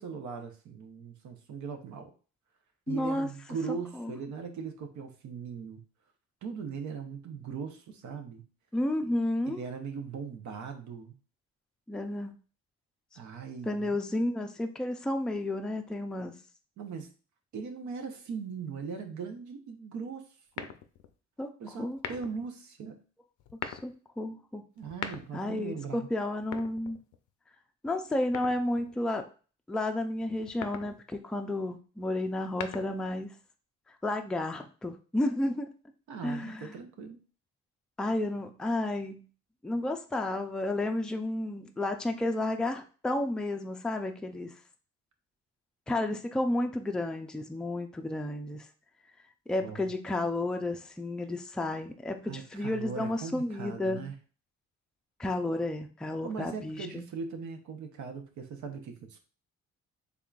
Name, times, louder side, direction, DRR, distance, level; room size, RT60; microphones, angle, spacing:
voice 1, 0.0-2.1 2.9-5.8 6.4-8.4 9.5-11.1 13.1-14.0 16.8-17.1 17.5-20.3 20.6-20.7 21.6-23.0 24.8-26.1 36.1-37.2 49.6-49.9 52.2-54.1 56.2-59.2, right 5 dB, 75° right, 5 dB, 0.8 m, -39 dB
voice 2, 2.9-3.3 4.0-4.1 8.7-9.6 11.9-12.3 13.6-16.3 21.4-21.5 21.8-22.0 23.6-24.6 25.3-27.0 27.8-29.2 29.7-33.3 33.9-35.7 36.2-36.7 38.0-39.2 39.6-44.5 45.9-48.7 49.5-54.0 55.2-57.0, left 1 dB, 5° left, 5 dB, 0.4 m, -32 dB
sound 1, 20.5-21.1 21.9-22.5 23.4-23.9 24.8-25.6 26.4-27.3 28.3-29.0 30.4-31.0 32.3-33.2, left 8 dB, 80° left, 0.5 m, -41 dB
3.7 x 3.4 x 2.4 m, 0.37 s
cardioid pair, 90°, 30 cm